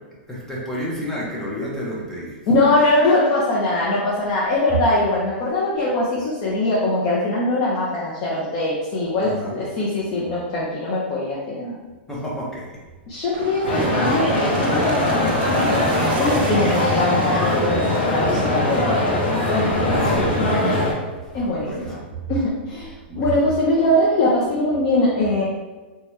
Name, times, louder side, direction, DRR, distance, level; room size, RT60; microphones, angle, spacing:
voice 1, 0.3-2.4 9.2-9.6 12.1-12.7 19.9-22.0 23.1-23.4, right 1 dB, 5° left, -5 dB, 0.7 m, -30 dB
voice 2, 2.5-11.8 13.1-15.9 16.2-19.0 19.5-20.1 21.3-22.0 22.3-25.4, left 2 dB, 40° left, -6 dB, 0.6 m, -22 dB
sound 1, 13.3-19.0, right 4 dB, 60° right, 0.4 m, -32 dB
sound 2, 13.6-20.9, left 1 dB, 75° left, 0.9 m, -21 dB
2.9 x 2.2 x 3.1 m, 1.3 s
hypercardioid pair, 145°, 6 cm